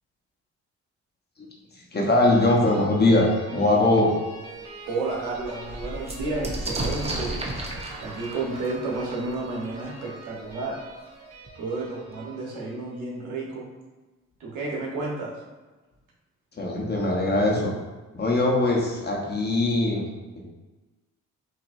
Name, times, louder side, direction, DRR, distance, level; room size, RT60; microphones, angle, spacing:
voice 1, 1.7-4.2 16.6-17.7 18.1-20.0, left 2 dB, 35° left, -2 dB, 1.1 m, -21 dB
sound 1, 2.2-13.0, right 3 dB, 60° right, 1.1 m, -45 dB
sound 2, 4.0-4.1 4.6-4.7 4.9-10.5 11.5-11.6 11.8-12.4, right 1 dB, 20° right, 0.8 m, -35 dB
voice 2, 4.9-7.4 8.0-10.8 11.6-13.7 14.4-15.4, right 3 dB, 85° right, -3 dB, 1.3 m, -31 dB
6.0 x 2.9 x 2.7 m, 1.2 s
cardioid pair, 90°, 30 cm